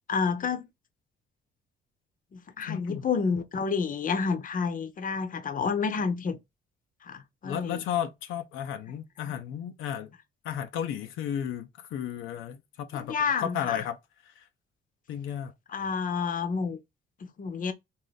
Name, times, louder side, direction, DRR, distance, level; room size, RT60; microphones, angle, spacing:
voice 1, 0.1-0.7 2.3-6.4 7.0-7.8 9.3-9.4 12.9-13.8 15.7-16.8 17.4-17.7, left 5 dB, 45° left, 0.7 m, -29 dB
voice 2, 2.7-3.0 7.4-10.1 10.4-14.0 14.3-14.4 15.1-15.5, left 9 dB, 85° left, 0.6 m, -33 dB
3.7 x 2.5 x 3.9 m
cardioid pair, 90°, 20 cm